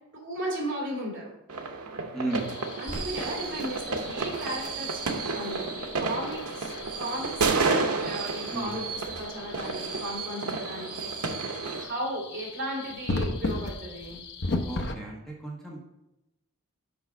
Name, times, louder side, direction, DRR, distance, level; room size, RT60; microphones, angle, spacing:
voice 1, 0.1-1.3 2.8-8.8 9.1-11.5 11.8-14.2, right 1 dB, 55° right, -3 dB, 2.5 m, -36 dB
sound 1, 1.5-11.9, right 4 dB, 85° right, 0.9 m, -31 dB
voice 2, 2.1-2.5 8.5-8.7 14.7-15.8, right 2 dB, ahead, -3 dB, 1.1 m, -34 dB
sound 2, 2.3-14.9, left 2 dB, 55° left, 0.7 m, -37 dB
Crackle, 2.9-10.2, right 1 dB, 35° right, 1.9 m, -48 dB
6.1 x 5.3 x 4.8 m, 0.92 s
head